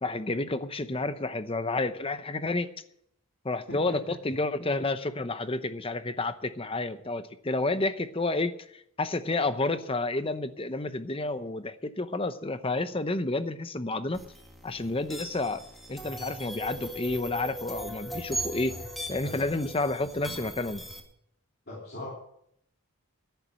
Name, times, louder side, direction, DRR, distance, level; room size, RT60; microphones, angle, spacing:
voice 1, 0.0-2.7 3.4-8.5 9.0-14.2 14.6-15.6 15.9-18.7 19.1-20.8, left 2 dB, 25° left, 11 dB, 0.8 m, -30 dB
voice 2, 3.7-4.0 18.6-18.8 19.2-19.4 21.7-22.1, left 1 dB, 45° left, -4 dB, 3.0 m, -39 dB
sound 1, 14.1-21.0, right 1 dB, ahead, 1.8 m, -39 dB
10.5 x 10.5 x 8.2 m, 0.72 s
head